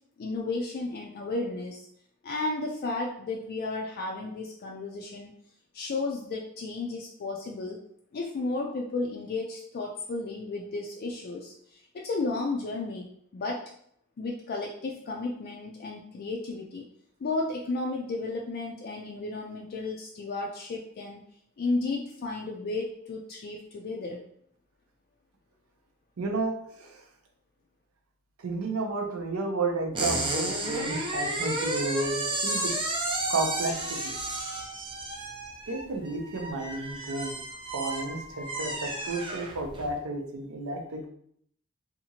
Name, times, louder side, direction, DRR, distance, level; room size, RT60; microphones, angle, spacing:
voice 1, 0.2-1.8 2.2-5.3 5.7-7.8 8.1-13.1 13.3-13.6 14.2-16.8 17.2-21.2 21.6-24.2, left 3 dB, 45° left, 0 dB, 0.3 m, -33 dB
voice 2, 26.2-26.9 28.4-32.7 33.3-34.2 35.7-37.4 37.7-41.1, right 2 dB, 85° right, 2 dB, 0.6 m, -32 dB
sound 1, 29.9-39.9, right 2 dB, 25° right, 0.4 m, -32 dB
2.8 x 2.4 x 2.8 m, 0.66 s
head